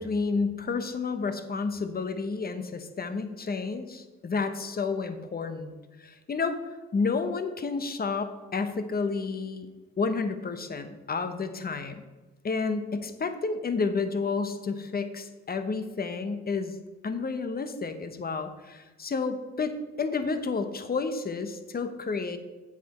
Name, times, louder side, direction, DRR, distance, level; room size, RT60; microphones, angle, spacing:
voice 1, 0.0-5.7 6.0-6.6 6.9-9.7 10.0-12.0 12.4-16.7 17.0-22.4, left 4 dB, 30° left, 9 dB, 1.0 m, -30 dB
8.2 x 7.5 x 4.2 m, 1.2 s
cardioid pair, 90°, 30 cm